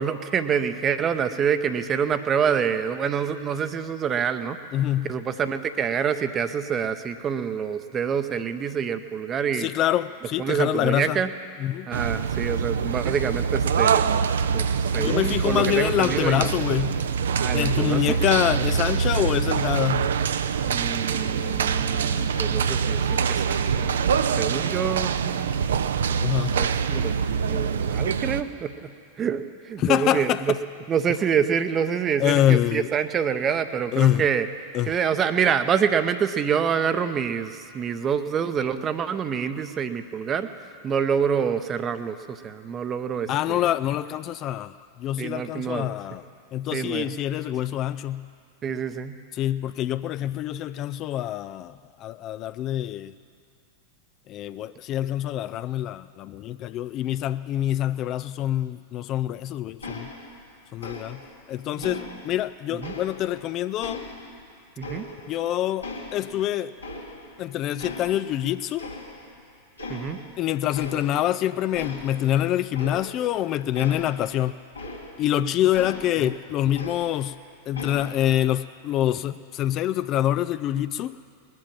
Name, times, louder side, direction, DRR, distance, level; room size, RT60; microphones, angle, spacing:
voice 1, 0.0-4.6 5.0-9.7 10.4-11.3 11.9-14.3 14.5-16.5 17.4-18.2 20.7-24.0 24.4-25.6 26.2-28.9 29.2-30.6 30.9-34.5 34.9-40.5 40.8-43.6 45.2-45.9 46.7-47.1 48.6-49.2 61.8-62.1 62.7-62.9 64.8-65.1 69.9-70.2 76.2-76.3, right 7 dB, 25° right, 11 dB, 0.7 m, -27 dB
voice 2, 4.7-5.1 9.6-11.2 11.6-11.9 15.0-17.0 17.5-20.1 26.2-26.6 29.8-30.4 32.2-32.9 33.9-34.3 34.7-34.9 43.3-46.2 46.5-48.3 49.3-53.1 54.3-60.1 60.7-61.2 61.5-64.1 65.3-66.8 67.4-68.9 70.4-74.6 75.2-77.4 77.7-81.2, left 12 dB, 35° left, 14 dB, 0.3 m, -25 dB
sound 1, 11.9-28.4, right 6 dB, 65° right, 0.5 m, -24 dB
sound 2, 59.8-60.5 60.8-61.4 61.8-63.4 63.8-65.5 65.8-67.4 67.8-68.5 68.8-69.4 69.8-70.3 70.7-71.4 71.7-75.4 75.7-77.4 77.7-78.4, left 2 dB, 80° left, 2.1 m, -39 dB
20.5 x 7.7 x 7.4 m, 2.4 s
figure-of-eight pair, 90°, 0 cm